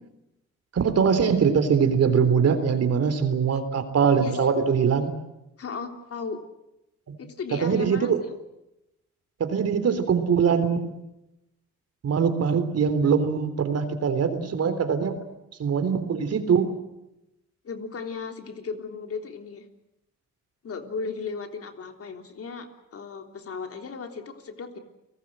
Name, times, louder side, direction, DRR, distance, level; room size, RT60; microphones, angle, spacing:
voice 1, 0.7-5.1 7.5-8.2 9.4-10.9 12.0-15.2 15.6-16.7, right 6 dB, 55° right, 10 dB, 3.7 m, -22 dB
voice 2, 4.1-4.5 5.6-6.4 7.2-8.1 17.6-19.6 20.6-24.8, left 5 dB, 50° left, 5 dB, 3.5 m, -36 dB
30.0 x 19.5 x 7.7 m, 0.90 s
cardioid pair, 90°, 30 cm